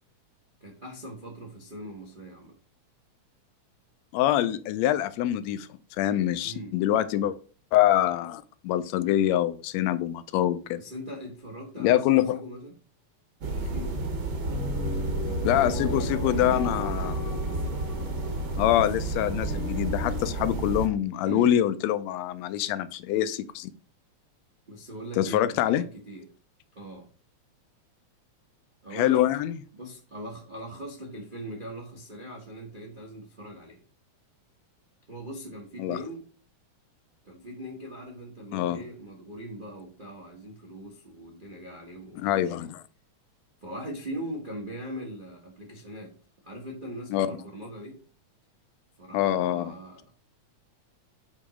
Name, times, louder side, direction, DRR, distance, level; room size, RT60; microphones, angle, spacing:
voice 1, 0.6-2.6 6.4-6.8 10.7-12.7 13.4-14.1 15.4-16.7 21.2-21.6 24.7-26.3 26.7-27.1 28.8-29.3 29.7-33.8 35.1-36.3 37.2-42.7 43.6-46.1 46.4-48.0 49.0-50.2, equal, 75° right, 0.4 m, -40 dB
voice 2, 4.1-5.7 6.0-7.3 7.7-10.8 11.8-12.4 15.4-17.4 18.6-23.7 25.2-25.8 28.9-29.5 35.8-36.0 38.5-38.8 42.2-42.8 47.1-47.3 49.1-49.7, left 12 dB, 80° left, 1.7 m, -25 dB
sound 1, 13.4-20.9, right 2 dB, 55° right, 1.2 m, -31 dB
sound 2, 14.5-20.2, left 3 dB, 60° left, 1.3 m, -37 dB
8.5 x 3.1 x 4.8 m
omnidirectional pair, 3.3 m